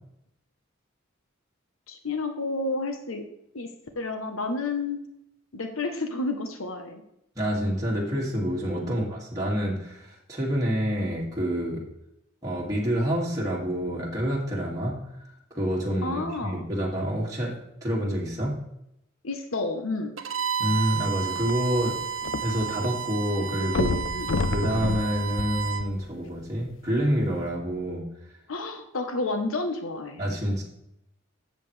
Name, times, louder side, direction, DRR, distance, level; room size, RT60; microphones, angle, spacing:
voice 1, 1.9-3.2 3.5-3.7 4.0-5.0 5.5-7.0 8.8-9.1 16.0-16.6 19.2-20.1 24.1-24.3 28.5-30.2, left 3 dB, 90° left, 6 dB, 1.0 m, -30 dB
voice 2, 7.4-11.9 12.4-15.0 15.5-18.6 20.6-22.0 22.4-24.1 24.4-28.0 30.2-30.6, equal, 20° right, -5 dB, 2.3 m, -27 dB
Bowed string instrument, 20.2-25.9, right 7 dB, 70° right, 0.9 m, -32 dB
sound 1, 21.4-22.9 23.2-23.3 23.7-26.3 27.0-27.1, left 3 dB, 65° left, 0.6 m, -29 dB
13.0 x 7.6 x 3.3 m, 0.82 s
head